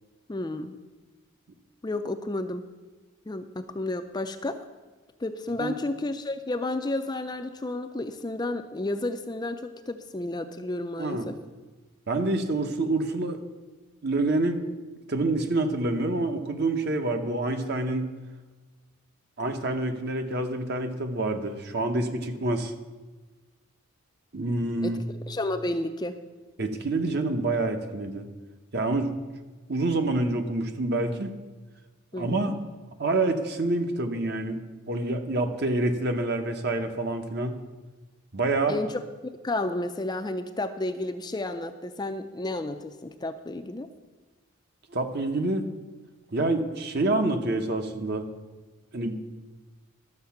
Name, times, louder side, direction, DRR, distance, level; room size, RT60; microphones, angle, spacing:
voice 1, 0.3-0.8 1.8-2.7 3.3-4.6 5.2-11.4 24.8-24.9 25.3-26.2 32.1-32.6 38.7-39.0 39.4-43.9, left 2 dB, 20° left, 7 dB, 0.4 m, -31 dB
voice 2, 11.0-11.3 12.1-13.4 14.0-14.6 15.1-18.1 19.4-22.7 24.3-25.0 26.6-28.3 28.7-29.1 29.7-31.3 32.2-32.5 33.0-34.6 34.9-37.6 38.3-38.8 44.9-45.7 46.3-48.3 48.9-49.3, right 2 dB, 50° right, 6 dB, 0.9 m, -27 dB
12.0 x 7.3 x 5.8 m, 1.3 s
head